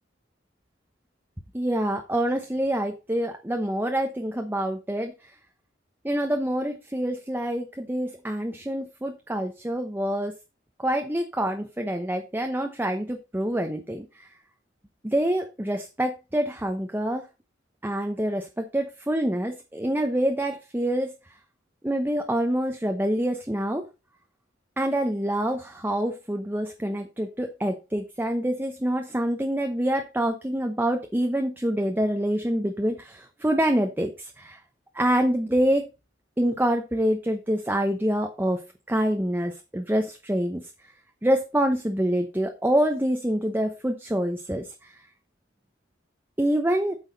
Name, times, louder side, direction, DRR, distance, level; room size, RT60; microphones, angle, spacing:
voice 1, 1.5-5.1 6.0-10.3 10.8-14.0 15.0-17.2 17.8-21.1 21.8-23.8 24.8-34.6 34.9-35.9 36.4-38.6 38.9-40.6 41.2-44.6 46.4-46.9, right 1 dB, 10° right, 4 dB, 0.9 m, -26 dB
9.2 x 6.3 x 4.0 m, 0.28 s
head